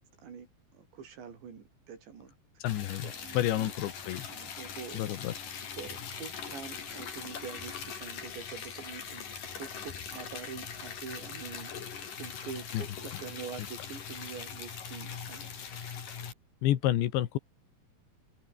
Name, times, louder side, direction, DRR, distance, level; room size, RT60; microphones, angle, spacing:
voice 1, 0.7-2.3 3.0-3.7 4.3-5.0 5.3-5.4 5.8-11.7 12.2-15.7, right 7 dB, 75° right, 7.0 m, -45 dB
voice 2, 2.6-4.3 4.9-5.3 12.7-12.8 16.6-17.4, left 13 dB, 80° left, 3.8 m, -29 dB
Liquid, 2.7-16.3, left 7 dB, 50° left, 4.7 m, -41 dB
omnidirectional pair, 5.2 m